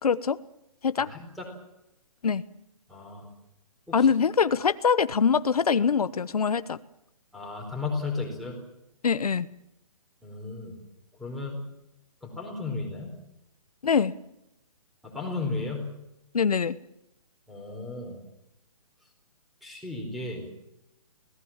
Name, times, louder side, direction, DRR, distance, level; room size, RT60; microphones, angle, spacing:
voice 1, 0.0-0.4 0.8-1.1 2.2-2.4 3.9-6.8 9.0-9.5 13.8-14.1 16.3-16.8, left 6 dB, 85° left, 14 dB, 1.1 m, -23 dB
voice 2, 1.1-1.5 2.9-3.3 3.9-4.1 7.3-8.6 10.2-10.7 11.2-11.6 12.2-13.1 15.0-15.9 17.5-18.2 19.6-20.4, left 3 dB, ahead, 3 dB, 4.4 m, -34 dB
26.0 x 18.5 x 7.4 m, 0.85 s
hypercardioid pair, 165°, 19 cm